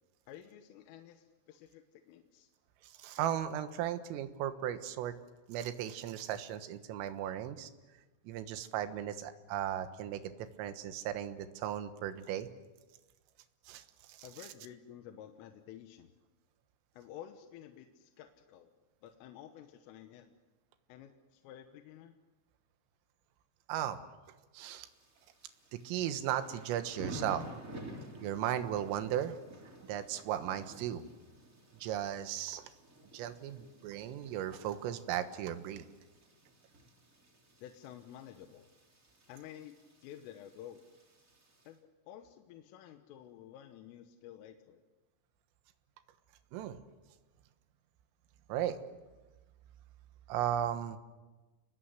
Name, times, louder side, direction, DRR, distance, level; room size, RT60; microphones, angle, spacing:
voice 1, 0.3-2.5 14.2-16.1 16.9-18.7 19.0-20.4 20.9-22.1 37.6-38.7 39.3-39.8 40.0-40.8 41.7-44.8, left 11 dB, 80° left, 6 dB, 3.6 m, -51 dB
voice 2, 3.0-5.2 5.5-7.7 8.3-12.5 13.7-13.8 14.1-14.2 23.7-24.0 24.5-24.9 25.9-27.5 28.2-29.4 29.8-31.0 31.8-32.7 33.1-35.9 46.5-46.8 48.5-48.8 50.3-51.0, right 11 dB, 80° right, 9 dB, 3.9 m, -36 dB
Thunder / Rain, 24.8-41.7, right 1 dB, 20° right, 2.7 m, -52 dB
30.0 x 21.0 x 8.1 m, 1.2 s
omnidirectional pair, 5.9 m